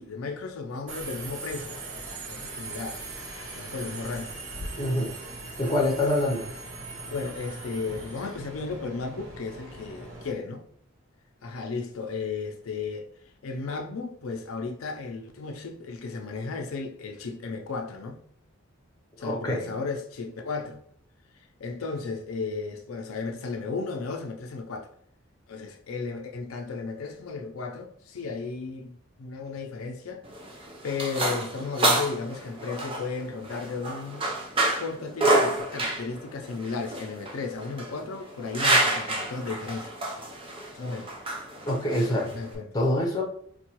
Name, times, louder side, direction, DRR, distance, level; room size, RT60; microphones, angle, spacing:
voice 1, 0.0-3.0 3.5-4.3 7.1-10.7 11.4-13.1 13.4-18.2 19.2-20.8 21.6-24.9 25.5-30.2 30.8-34.3 34.8-39.9 40.7-41.1 41.9-42.7, left 4 dB, 85° left, 0.5 m, -34 dB
Subway metro underground, 0.9-10.3, right 2 dB, 85° right, 0.9 m, -40 dB
voice 2, 4.8-5.1 5.6-6.5 19.2-19.6 41.7-42.3 42.7-43.2, left 1 dB, 20° left, 0.7 m, -25 dB
sound 1, 30.2-42.6, right 1 dB, 25° right, 0.5 m, -28 dB
4.4 x 2.3 x 2.9 m
head